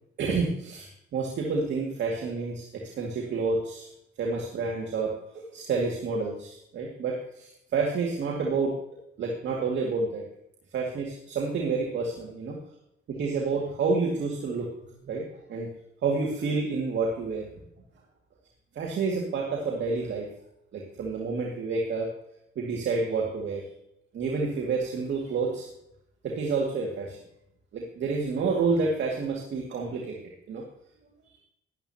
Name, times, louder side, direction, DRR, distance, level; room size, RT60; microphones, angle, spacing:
voice 1, 0.2-3.9 4.2-8.8 9.2-10.2 10.7-12.6 13.1-14.7 15.0-15.7 16.0-17.5 18.8-20.3 20.7-22.1 22.6-23.6 24.1-25.7 26.2-27.2 27.7-30.2 30.5-30.6 31.3-31.4, right 4 dB, 65° right, 0 dB, 2.3 m, -29 dB
13.0 x 11.5 x 2.9 m, 0.78 s
cardioid pair, 90°, 20 cm